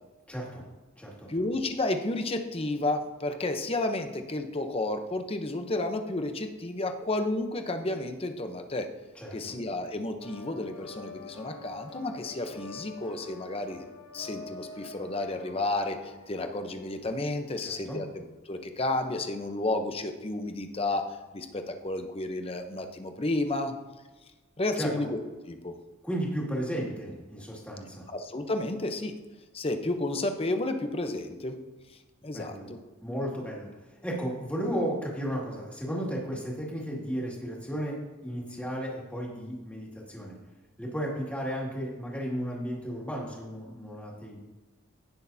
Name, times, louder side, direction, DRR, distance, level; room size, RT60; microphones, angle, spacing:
voice 1, 0.3-0.7 1.0-1.3 9.2-9.4 17.6-18.0 24.7-25.0 26.0-28.1 32.3-32.7 33.0-33.7 34.0-38.0 38.2-40.4 40.8-44.4, equal, 5° left, -4 dB, 2.1 m, -34 dB
voice 2, 1.3-8.9 9.3-13.8 14.1-23.7 24.6-25.2 25.5-25.7 28.1-29.2 29.5-31.6 32.2-32.8, left 2 dB, 30° left, 6 dB, 0.8 m, -31 dB
sound 1, 10.2-17.8, left 2 dB, 70° left, 2.9 m, -47 dB
17.5 x 6.4 x 2.7 m, 1.2 s
head